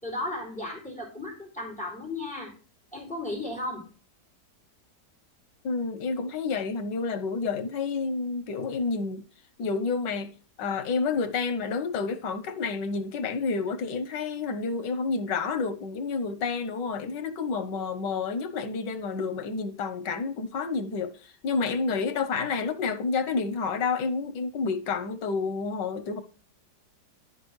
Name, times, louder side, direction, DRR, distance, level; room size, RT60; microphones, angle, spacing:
voice 1, 0.0-2.5 2.9-3.8, left 2 dB, 5° left, 4.2 m, -35 dB
voice 2, 5.6-9.2 9.6-26.2, left 4 dB, 85° left, 1.7 m, -29 dB
13.5 x 5.2 x 3.2 m
omnidirectional pair, 1.8 m